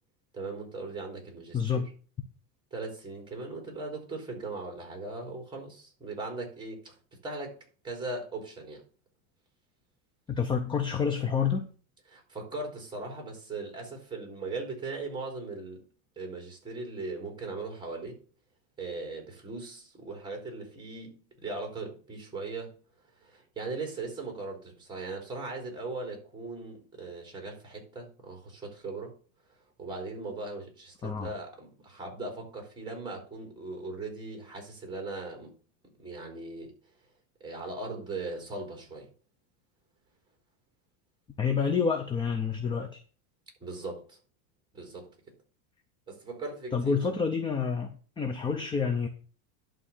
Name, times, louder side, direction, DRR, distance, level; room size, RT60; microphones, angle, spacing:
voice 1, 0.3-1.8 2.7-7.0 7.2-7.6 7.8-8.8 12.1-15.8 16.1-18.2 18.8-22.8 23.2-29.1 29.8-35.5 36.0-36.7 37.4-39.1 43.6-44.2 44.7-45.1 46.1-47.0, right 3 dB, 10° right, 3.5 m, -39 dB
voice 2, 1.5-1.9 10.3-11.7 31.0-31.3 41.4-43.0 46.7-49.1, left 6 dB, 10° left, 0.6 m, -28 dB
11.0 x 3.8 x 7.0 m
supercardioid pair, 155°, 43 cm